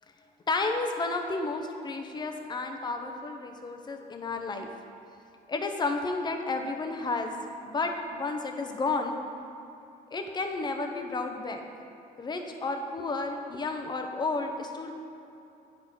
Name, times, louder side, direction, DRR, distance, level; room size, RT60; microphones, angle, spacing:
voice 1, 0.5-4.7 5.5-7.3 7.6-9.2 10.1-11.6 12.2-14.9, left 3 dB, 25° left, 4 dB, 0.8 m, -32 dB
9.2 x 5.3 x 4.5 m, 2.8 s
cardioid pair, 110°, 17 cm